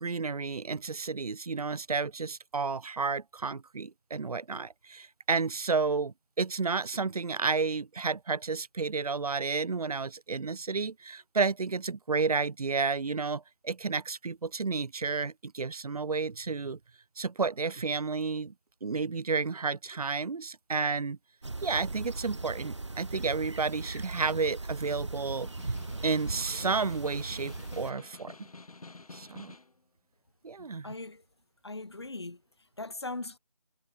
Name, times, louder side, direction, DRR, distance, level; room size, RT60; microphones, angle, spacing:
voice 1, 0.0-16.8 17.2-18.5 18.8-21.2 21.6-25.5 26.0-28.4 29.1-29.5 30.4-30.9, right 4 dB, 70° right, 0.6 m, -31 dB
sound 1, 21.4-27.9, right 2 dB, 50° right, 1.6 m, -38 dB
Snare drum, 25.3-29.8, left 3 dB, 65° left, 1.2 m, -49 dB
voice 2, 30.6-31.2 31.6-32.4 32.8-33.4, left 2 dB, 40° left, 1.1 m, -39 dB
figure-of-eight pair, 180°, 20 cm